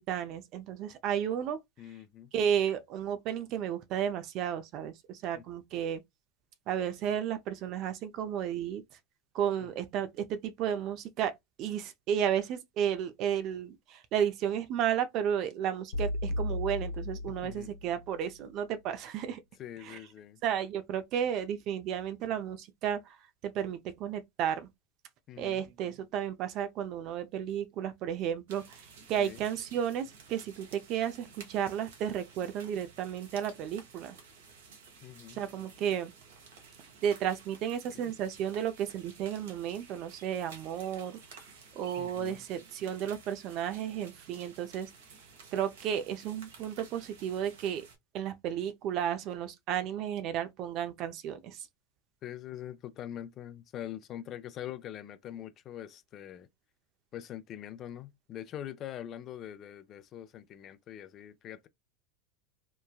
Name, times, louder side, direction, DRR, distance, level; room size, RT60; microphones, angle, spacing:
voice 1, 0.1-1.6 2.3-6.0 6.7-8.8 9.3-11.3 11.6-19.4 19.8-20.0 20.4-23.2 23.5-24.7 25.4-28.6 29.1-34.2 35.4-36.1 37.0-41.2 41.7-44.9 45.5-47.9 48.1-51.6, right 9 dB, 50° right, 0.6 m, -33 dB
voice 2, 1.8-2.3 5.3-5.4 9.6-9.7 17.3-17.7 19.6-20.4 25.3-25.7 29.2-29.4 35.0-35.4 37.9-38.1 42.0-42.4 52.2-56.5 57.1-61.7, left 11 dB, 40° left, 0.4 m, -43 dB
sound 1, 15.9-18.0, left 1 dB, 75° left, 0.9 m, -35 dB
sound 2, 28.5-48.0, right 5 dB, 80° right, 1.0 m, -54 dB
3.1 x 2.2 x 2.3 m
hypercardioid pair, 100°, 0 cm